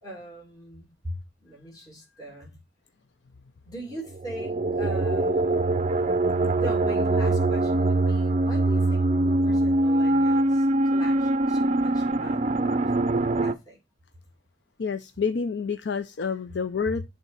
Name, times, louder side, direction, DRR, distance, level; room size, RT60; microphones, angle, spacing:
voice 1, 0.0-2.5 3.7-5.7 6.6-12.9 13.4-13.8, equal, 20° left, 2.5 m, -40 dB
sound 1, 4.2-13.5, right 2 dB, 35° right, 0.5 m, -23 dB
voice 2, 14.8-17.0, left 5 dB, 65° left, 0.5 m, -28 dB
11.0 x 3.7 x 5.6 m
head